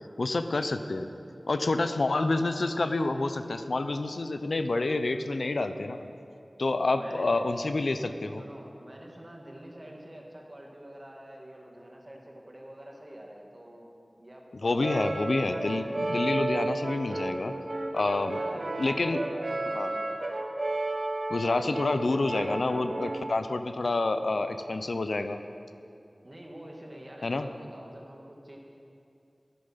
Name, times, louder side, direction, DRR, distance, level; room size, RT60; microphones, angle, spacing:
voice 1, 0.2-1.1 1.5-6.1 6.6-8.4 14.6-17.5 17.9-18.4 18.8-19.2 19.7-19.9 21.3-25.4 27.2-27.5, left 2 dB, 85° left, 9 dB, 0.6 m, -28 dB
voice 2, 6.9-7.3 8.4-15.3 18.0-20.2 26.2-28.6, right 1 dB, 35° right, 0 dB, 2.0 m, -47 dB
Brass instrument, 14.8-23.4, right 2 dB, 70° right, 1.3 m, -33 dB
12.5 x 10.5 x 5.7 m, 2.7 s
wide cardioid pair, 55°, 0 cm